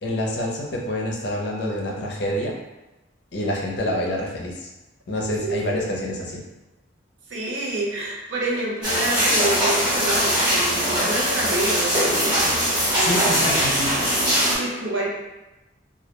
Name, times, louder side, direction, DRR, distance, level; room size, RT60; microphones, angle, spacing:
voice 1, 0.0-2.5 3.3-4.7 5.1-6.4 13.0-13.9, left 1 dB, 60° left, -1 dB, 0.5 m, -27 dB
voice 2, 5.1-5.6 7.3-12.6 12.9-13.6 14.4-15.1, right 2 dB, 80° right, -3 dB, 0.6 m, -28 dB
sound 1, 8.8-14.5, equal, 20° right, 0.9 m, -21 dB
2.3 x 2.1 x 2.8 m, 1.0 s
head